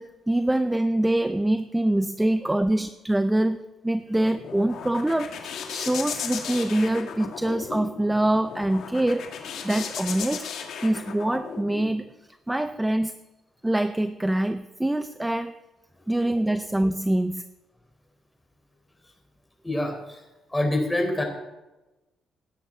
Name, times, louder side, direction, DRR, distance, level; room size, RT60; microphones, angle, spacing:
voice 1, 0.0-9.4 9.6-10.5 10.8-12.1 12.5-13.1 13.6-15.5 16.1-17.4, right 1 dB, 10° right, 10 dB, 0.6 m, -25 dB
sound 1, 4.0-11.9, left 7 dB, 75° left, 2.0 m, -36 dB
voice 2, 19.6-21.2, left 1 dB, 10° left, 2 dB, 4.3 m, -27 dB
17.0 x 11.0 x 4.0 m, 1.1 s
cardioid pair, 90°, 0 cm